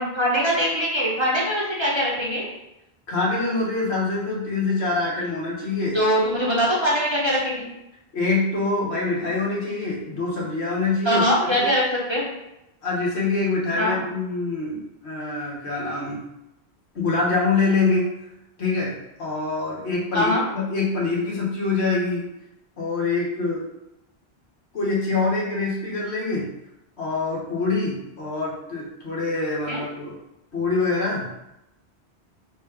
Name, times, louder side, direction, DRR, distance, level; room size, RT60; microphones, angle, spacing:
voice 1, 0.0-2.5 5.9-7.6 11.0-12.2 13.8-14.0 20.1-20.4 29.7-29.8, equal, 30° right, -5 dB, 0.8 m, -22 dB
voice 2, 3.1-6.0 8.1-11.7 12.8-16.2 16.9-18.1 18.6-22.2 22.8-23.6 24.7-26.5 27.0-30.1 30.5-31.3, left 3 dB, 80° left, -5 dB, 1.5 m, -25 dB
3.9 x 2.5 x 4.6 m, 0.89 s
omnidirectional pair, 1.1 m